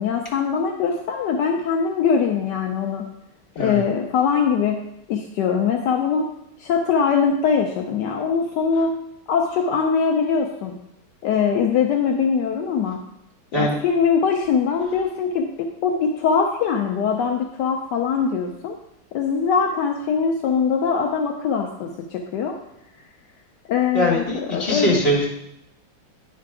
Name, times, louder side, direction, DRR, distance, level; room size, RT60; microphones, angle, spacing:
voice 1, 0.0-3.1 3.6-4.8 5.1-6.3 6.6-8.9 9.3-10.7 11.2-13.0 13.5-18.8 19.1-22.6 23.7-24.2 24.5-25.0, left 6 dB, 75° left, 2 dB, 1.2 m, -22 dB
voice 2, 23.9-25.3, equal, 35° left, -4 dB, 1.9 m, -21 dB
9.6 x 3.4 x 4.7 m, 0.82 s
omnidirectional pair, 1.9 m